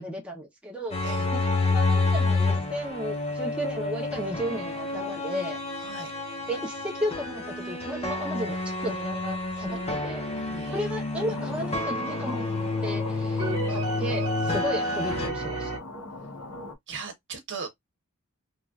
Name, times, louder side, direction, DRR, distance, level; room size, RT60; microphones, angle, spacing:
voice 1, 0.0-1.0 1.3-5.6 6.5-10.2 10.7-12.5 12.8-15.7, equal, 5° right, 0.7 m, -34 dB
sound 1, 0.9-15.3, left 3 dB, 30° left, 0.7 m, -29 dB
voice 2, 5.8-6.1 10.4-10.8 14.4-14.6 16.9-17.7, right 4 dB, 55° right, 1.0 m, -38 dB
sound 2, 9.7-11.3 13.4-15.8, right 2 dB, 85° right, 0.8 m, -33 dB
sound 3, 11.2-16.8, left 2 dB, 75° left, 0.8 m, -40 dB
3.1 x 2.4 x 2.3 m
head